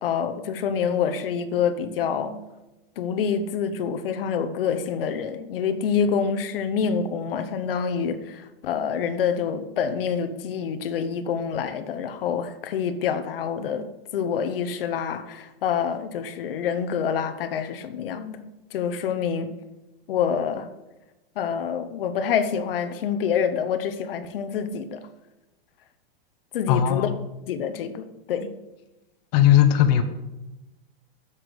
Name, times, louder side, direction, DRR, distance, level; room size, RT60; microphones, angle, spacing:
voice 1, 0.0-2.4 3.0-13.9 14.1-18.4 18.7-19.5 20.1-20.7 21.3-25.0 26.5-27.1 27.5-28.5, left 7 dB, 65° left, 9 dB, 1.1 m, -27 dB
voice 2, 26.7-27.1 29.3-30.0, left 11 dB, 45° left, 6 dB, 1.0 m, -18 dB
8.1 x 7.4 x 8.0 m, 1.0 s
supercardioid pair, 155°, 30 cm